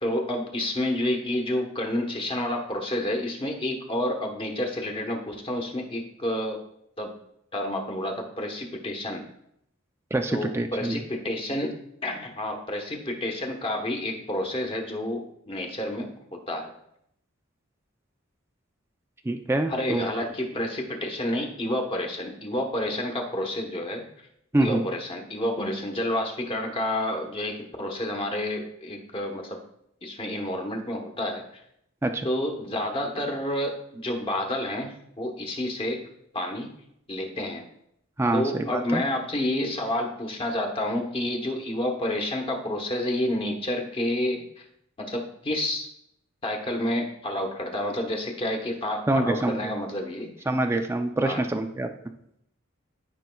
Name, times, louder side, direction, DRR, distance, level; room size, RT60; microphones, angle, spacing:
voice 1, 0.0-6.6 7.0-7.1 7.5-9.2 10.3-11.7 12.0-16.7 19.7-24.1 24.6-29.6 30.0-31.4 32.2-36.0 36.3-36.7 37.1-37.7 38.3-44.6 45.0-45.9 46.4-50.3 51.2-51.4, left 1 dB, 25° left, 2 dB, 1.1 m, -29 dB
voice 2, 10.1-11.0 19.2-20.1 24.5-24.8 32.0-32.3 38.2-39.0 49.1-49.7 50.5-51.9, right 2 dB, 10° right, 5 dB, 0.4 m, -25 dB
13.5 x 5.3 x 2.3 m, 0.76 s
head